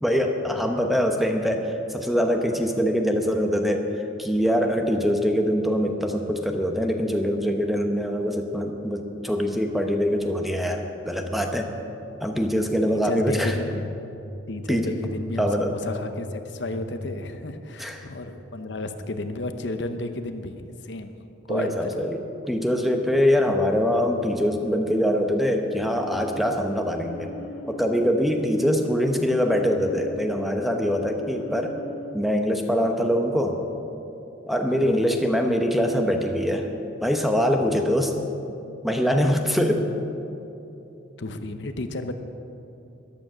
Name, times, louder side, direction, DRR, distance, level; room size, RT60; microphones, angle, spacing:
voice 1, 0.0-3.9 4.2-11.7 12.2-13.5 14.7-14.9 15.4-15.7 17.8-18.1 21.5-22.2 22.5-27.3 27.7-31.8 32.1-33.6 34.5-36.7 37.0-38.1 38.8-39.9, equal, ahead, 3 dB, 0.8 m, -23 dB
voice 2, 12.8-13.8 14.5-21.1 21.5-22.1 28.6-28.7 34.8-35.0 41.2-42.1, left 2 dB, 60° left, 8 dB, 0.8 m, -32 dB
sound 1, 13.1-20.0, left 1 dB, 20° right, 1.4 m, -38 dB
sound 2, 25.8-32.1, left 1 dB, 90° left, 1.1 m, -40 dB
14.0 x 11.5 x 6.2 m, 2.9 s
head